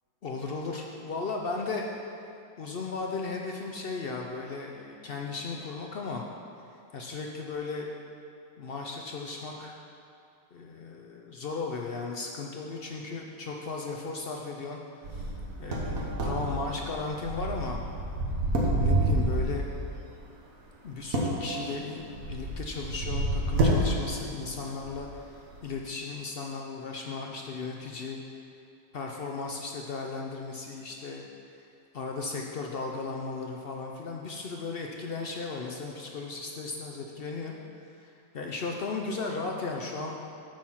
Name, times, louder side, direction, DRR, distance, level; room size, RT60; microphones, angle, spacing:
voice 1, 0.2-1.8 2.6-6.2 6.9-7.9 8.6-9.8 10.5-14.8 15.1-15.3 15.6-17.8 18.6-19.7 20.8-25.3 25.6-28.2 28.9-31.3 31.5-31.6 31.9-37.6 38.0-40.2, left 4 dB, 65° left, 0 dB, 0.5 m, -36 dB
sound 1, 15.0-19.8 21.0-24.4 24.7-25.0 25.5-25.6, right 1 dB, 65° right, 1.6 m, -29 dB
9.0 x 4.6 x 5.6 m, 2.6 s
omnidirectional pair, 1.7 m